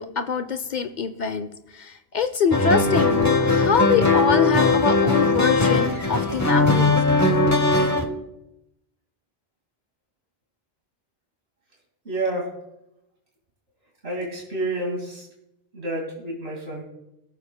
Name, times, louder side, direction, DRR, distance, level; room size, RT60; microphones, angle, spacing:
voice 1, 0.0-7.0 7.6-7.7, left 5 dB, 55° left, 10 dB, 0.6 m, -25 dB
sound 1, 2.5-8.0, left 3 dB, 20° left, 0.8 m, -19 dB
voice 2, 12.0-12.5 14.0-15.2 15.7-16.8, right 2 dB, 80° right, -3 dB, 2.6 m, -29 dB
22.0 x 7.4 x 2.2 m, 0.88 s
omnidirectional pair, 1.0 m